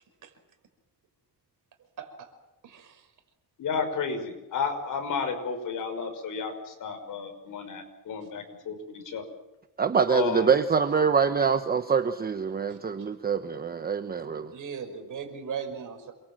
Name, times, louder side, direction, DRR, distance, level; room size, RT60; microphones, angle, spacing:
voice 1, 2.0-2.3 2.6-3.0 14.5-16.1, right 6 dB, 55° right, 6 dB, 5.5 m, -37 dB
voice 2, 3.6-9.2 10.1-10.6, left 5 dB, 60° left, 6 dB, 6.0 m, -32 dB
voice 3, 9.8-14.5, right 6 dB, 25° right, 8 dB, 1.1 m, -25 dB
28.5 x 23.0 x 7.7 m, 1.0 s
cardioid pair, 140°, 36 cm